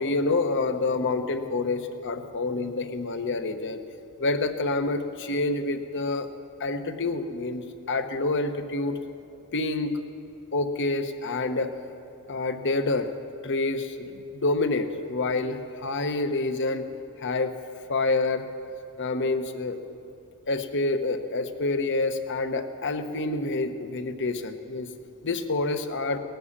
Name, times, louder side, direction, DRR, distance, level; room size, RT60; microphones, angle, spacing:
voice 1, 0.0-3.8 4.2-6.3 6.6-9.0 9.5-10.0 10.5-11.7 12.3-13.1 13.4-16.8 17.2-17.5 17.9-18.4 19.0-19.8 20.5-24.9 25.2-26.2, left 3 dB, 55° left, 8 dB, 1.0 m, -27 dB
18.5 x 10.5 x 7.4 m, 2.9 s
head